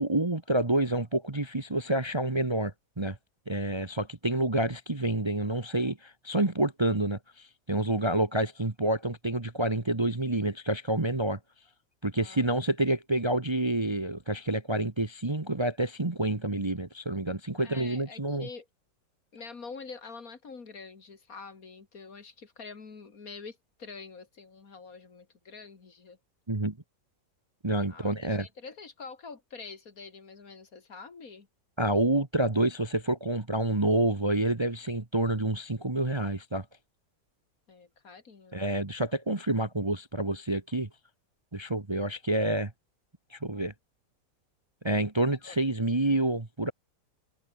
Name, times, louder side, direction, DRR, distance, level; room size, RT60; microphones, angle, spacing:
voice 1, 0.0-3.2 3.5-11.4 12.0-18.5 26.5-26.8 27.6-28.5 31.8-36.6 38.5-40.9 41.5-42.7 43.3-43.7 44.8-46.7, right 1 dB, 15° right, 1.2 m, -28 dB
voice 2, 17.6-18.7 19.3-26.2 27.9-31.5 37.7-38.7 45.4-45.6, left 4 dB, 50° left, 2.5 m, -46 dB
omnidirectional pair, 1.9 m